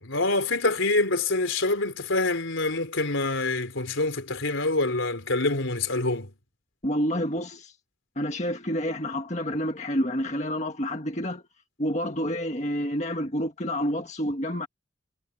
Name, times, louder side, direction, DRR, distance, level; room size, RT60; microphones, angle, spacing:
voice 1, 0.0-6.3, left 2 dB, 80° left, 3.8 m, -26 dB
voice 2, 6.8-7.7 8.1-11.4 11.8-14.7, equal, 35° left, 1.8 m, -28 dB
head